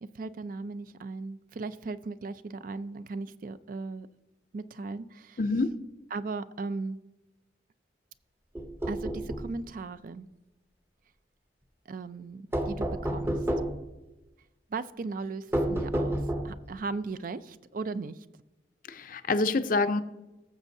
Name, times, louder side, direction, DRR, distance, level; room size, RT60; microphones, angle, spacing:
voice 1, 0.0-4.1 4.5-5.4 6.1-7.0 8.9-10.3 11.9-13.5 14.7-18.3, right 3 dB, 50° right, 14 dB, 0.4 m, -37 dB
voice 2, 5.4-5.8 18.9-20.0, left 3 dB, 50° left, 11 dB, 0.5 m, -26 dB
sound 1, 8.5-9.5 12.5-13.9 15.5-16.7, right 1 dB, 15° right, 0.7 m, -30 dB
18.5 x 7.2 x 2.7 m, 1.0 s
head